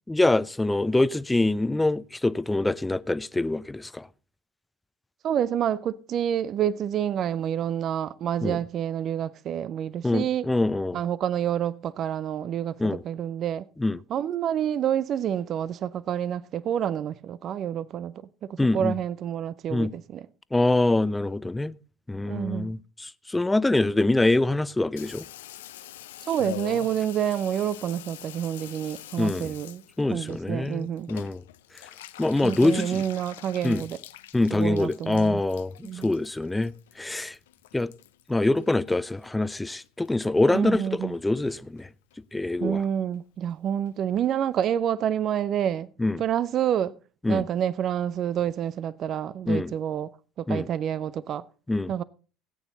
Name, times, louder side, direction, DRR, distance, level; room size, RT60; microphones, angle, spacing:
voice 1, 0.1-4.1 8.4-8.6 10.0-11.0 12.8-13.0 13.8-14.0 18.6-18.9 19.7-19.9 20.5-21.7 22.1-25.3 29.2-29.5 30.0-31.4 32.2-33.0 33.6-33.8 34.3-36.7 37.0-37.4 37.7-37.9 38.3-41.9 42.3-42.8 46.0-46.2 47.2-47.4 49.5-49.7 50.5-50.7 51.7-51.9, left 2 dB, 10° left, 0.6 m, -25 dB
voice 2, 5.2-10.5 10.9-13.7 14.1-18.1 18.4-20.3 22.2-22.7 26.2-29.8 30.1-31.1 32.4-34.0 34.5-35.4 35.8-36.1 40.5-41.1 42.6-45.9 46.2-47.0 47.3-50.1 50.4-51.4 51.9-52.0, right 9 dB, 50° right, 0.5 m, -28 dB
Water tap faucet / Bathtub (filling or washing), 25.0-39.5 39.8-40.5 40.8-40.9 41.1-41.2 41.4-41.8 42.1-42.2 42.4-42.5 42.8-42.9 43.1-43.2 43.5-43.6 43.9-44.0 44.2-44.3 44.6-44.7, left 13 dB, 75° left, 0.7 m, -45 dB
18.0 x 8.8 x 4.0 m
figure-of-eight pair, 65°, 0 cm